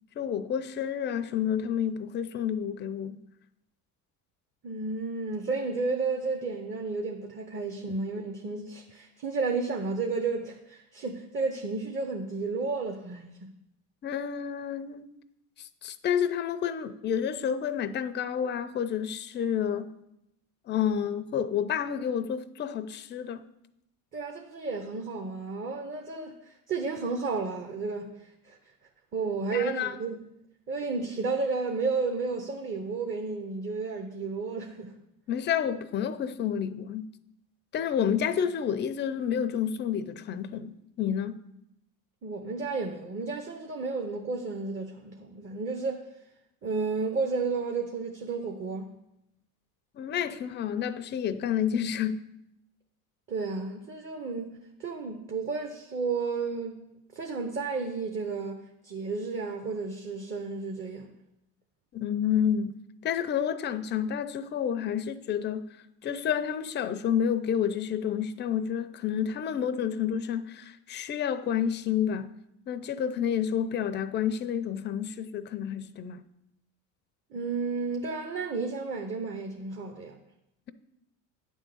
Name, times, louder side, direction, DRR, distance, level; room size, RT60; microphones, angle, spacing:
voice 1, 0.2-3.2 14.0-15.1 15.6-19.9 20.7-23.4 29.5-29.9 35.3-37.1 37.7-41.4 50.0-52.2 61.9-62.8 63.0-65.7 66.0-72.3 72.7-76.2, left 8 dB, 25° left, 0.5 m, -29 dB
voice 2, 4.6-13.3 24.1-28.6 29.1-30.2 30.7-34.9 42.2-46.0 46.6-48.9 53.3-56.8 57.1-61.1 77.3-80.2, right 4 dB, 30° right, 0.8 m, -32 dB
8.8 x 3.6 x 6.8 m
supercardioid pair, 90°, 41 cm